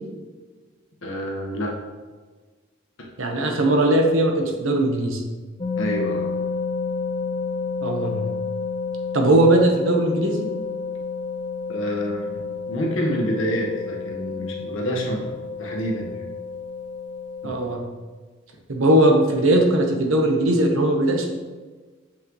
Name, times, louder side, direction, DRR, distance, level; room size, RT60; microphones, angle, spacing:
voice 1, 1.0-1.8 3.0-3.1 5.8-6.3 11.7-16.2 17.4-17.5, equal, 75° left, -1 dB, 1.4 m, -28 dB
voice 2, 3.2-5.2 7.8-8.3 9.1-10.5 17.4-17.9 18.7-21.3, right 1 dB, 80° right, 2 dB, 1.1 m, -19 dB
sound 1, 5.6-17.8, left 4 dB, 25° left, 0.4 m, -30 dB
7.7 x 5.9 x 3.1 m, 1.4 s
head